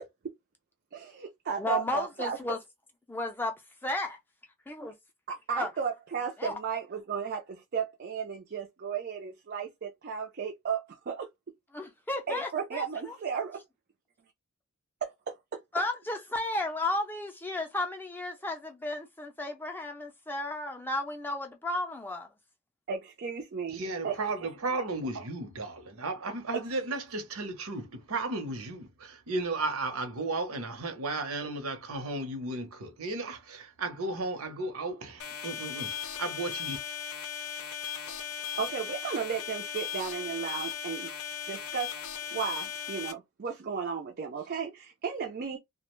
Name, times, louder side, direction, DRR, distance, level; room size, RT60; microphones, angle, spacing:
voice 1, 0.9-2.4 5.3-11.3 12.3-13.6 15.0-15.1 22.9-24.2 26.5-26.6 38.0-38.2 38.6-41.1 41.5-42.0 42.3-45.6, right 6 dB, 45° right, 0.4 m, -34 dB
voice 2, 1.6-2.6 3.1-3.5 3.8-4.2 4.7-4.9 5.6-5.7 6.4-6.5 11.7-13.2 15.7-22.3, left 2 dB, 10° left, 0.4 m, -33 dB
voice 3, 23.7-36.8, right 2 dB, 80° right, 0.8 m, -34 dB
sound 1, 35.2-43.1, left 8 dB, 90° left, 0.6 m, -37 dB
2.3 x 2.1 x 3.0 m
head